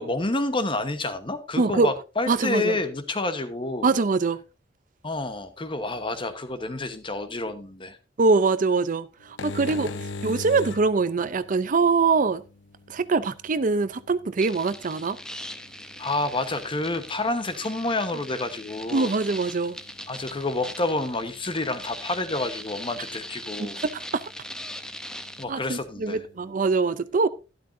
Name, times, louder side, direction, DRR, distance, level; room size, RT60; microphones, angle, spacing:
voice 1, 0.0-3.9 5.0-8.0 9.7-10.0 16.0-19.1 20.1-23.8 25.4-26.2, left 2 dB, 30° left, 1.1 m, -29 dB
voice 2, 1.6-1.9 2.3-2.8 3.8-4.4 8.2-9.9 10.2-12.4 12.9-15.2 18.9-19.8 23.6-24.3 25.5-27.3, right 4 dB, 45° right, 0.5 m, -23 dB
sound 1, 9.2-26.5, left 3 dB, 85° left, 0.7 m, -44 dB
sound 2, 14.4-25.5, left 1 dB, 5° left, 0.8 m, -40 dB
12.5 x 12.0 x 2.6 m
head